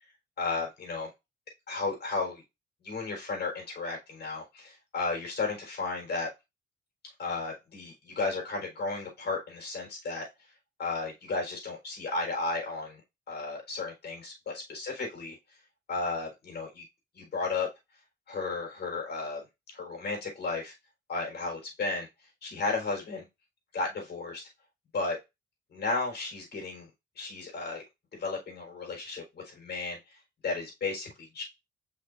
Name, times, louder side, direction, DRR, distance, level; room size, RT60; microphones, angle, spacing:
voice 1, 0.4-1.1 1.7-2.4 2.8-6.3 7.2-10.3 10.8-13.0 13.3-15.4 15.9-16.8 17.1-17.7 18.3-19.4 19.7-20.7 21.1-22.1 22.4-23.2 23.7-24.5 24.9-25.2 25.7-26.9 27.2-27.8 28.1-30.0 30.4-31.4, left 3 dB, 55° left, 0 dB, 4.2 m, -34 dB
6.6 x 5.6 x 2.6 m, 0.23 s
cardioid pair, 90°, 20 cm